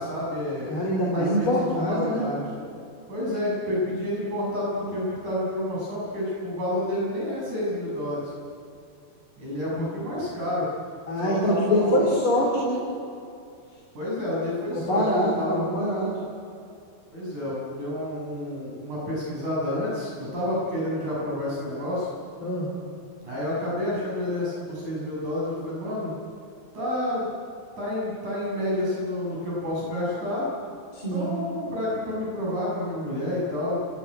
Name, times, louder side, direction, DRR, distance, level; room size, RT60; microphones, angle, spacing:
voice 1, 0.0-0.7 1.1-1.5 1.9-2.5 3.1-8.3 9.4-10.7 11.2-12.1 13.9-15.0 15.4-15.6 17.1-22.1 23.2-26.1 26.7-27.3 27.8-30.5 31.1-33.8, left 1 dB, 50° right, -5 dB, 8.0 m, -29 dB
voice 2, 0.7-2.2 9.7-9.9 11.1-12.8 14.7-16.1 22.4-22.7 30.9-31.4, equal, 35° left, -3 dB, 4.6 m, -24 dB
28.5 x 17.5 x 9.7 m, 2.5 s
omnidirectional pair, 4.6 m